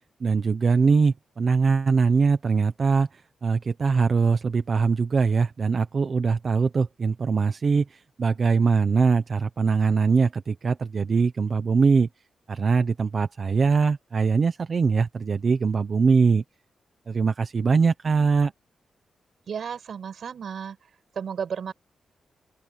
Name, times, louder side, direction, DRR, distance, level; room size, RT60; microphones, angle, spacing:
voice 1, 0.2-12.1 12.5-16.4 17.1-18.5, right 5 dB, 35° right, 0.9 m, -22 dB
voice 2, 19.5-20.8 21.2-21.7, right 7 dB, 55° right, 7.3 m, -33 dB
open air
wide cardioid pair, 175°, 0 cm